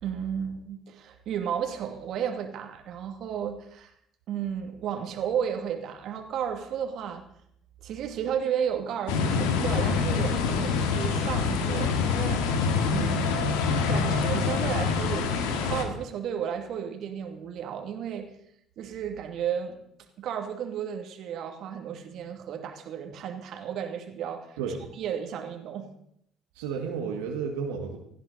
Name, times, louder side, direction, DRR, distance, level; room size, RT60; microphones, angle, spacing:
voice 1, 0.0-3.9 4.3-7.2 7.8-12.5 12.9-18.3 18.8-19.8 20.2-24.6 25.0-25.9, right 8 dB, 65° right, 5 dB, 2.6 m, -33 dB
sound 1, 9.1-15.8, left 5 dB, 80° left, 2.1 m, -26 dB
voice 2, 24.6-24.9 26.5-28.0, right 6 dB, 80° right, 2 dB, 1.9 m, -32 dB
18.0 x 15.0 x 4.2 m, 0.73 s
hypercardioid pair, 60°, 0 cm